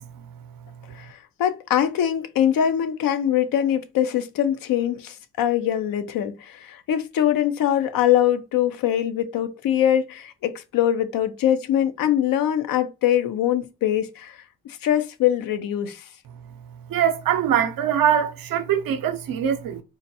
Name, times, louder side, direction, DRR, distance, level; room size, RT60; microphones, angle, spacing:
voice 1, 0.9-14.4 14.8-16.1, left 10 dB, 85° left, 0.5 m, -23 dB
voice 2, 16.9-19.8, right 9 dB, 90° right, 0.6 m, -22 dB
3.8 x 2.2 x 2.6 m
cardioid pair, 60°, 33 cm